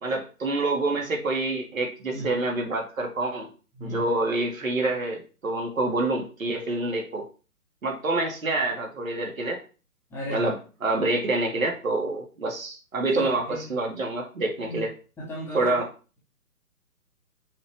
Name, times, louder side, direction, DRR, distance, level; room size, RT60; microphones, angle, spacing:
voice 1, 0.0-3.5 3.8-7.2 7.8-9.6 10.3-10.6 10.8-14.9 15.5-15.8, right 2 dB, 60° right, 1 dB, 2.3 m, -27 dB
voice 2, 10.1-10.5 13.1-13.7 14.6-14.8 15.2-15.8, left 1 dB, 5° left, -6 dB, 1.0 m, -35 dB
6.3 x 4.1 x 4.7 m, 0.35 s
figure-of-eight pair, 130°, 45 cm